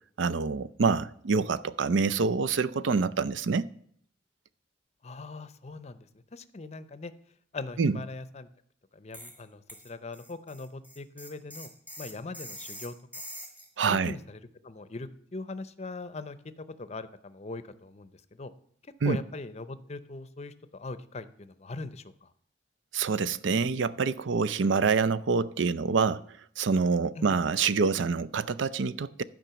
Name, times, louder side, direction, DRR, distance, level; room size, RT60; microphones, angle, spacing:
voice 1, 0.2-3.7 7.8-8.0 13.8-14.1 19.0-19.2 22.9-26.2 26.6-29.2, right 5 dB, 80° right, 0.5 m, -26 dB
voice 2, 5.0-7.1 7.5-8.5 8.9-11.7 12.0-13.0 13.9-18.5 18.8-22.3 27.1-27.3, left 3 dB, 35° left, 0.6 m, -41 dB
sound 1, 9.1-9.4 9.7-13.7, equal, 10° right, 1.7 m, -44 dB
12.0 x 5.2 x 6.9 m
head